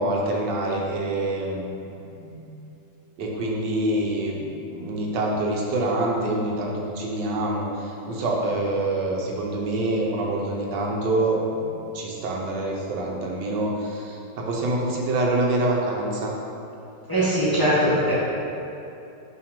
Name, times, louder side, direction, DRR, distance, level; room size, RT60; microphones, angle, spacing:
voice 1, 0.0-1.7 2.1-2.6 3.2-16.4, right 2 dB, 85° right, -1 dB, 1.5 m, -26 dB
voice 2, 17.1-18.2, equal, 15° left, -9 dB, 0.9 m, -21 dB
5.8 x 3.4 x 5.1 m, 2.8 s
omnidirectional pair, 1.9 m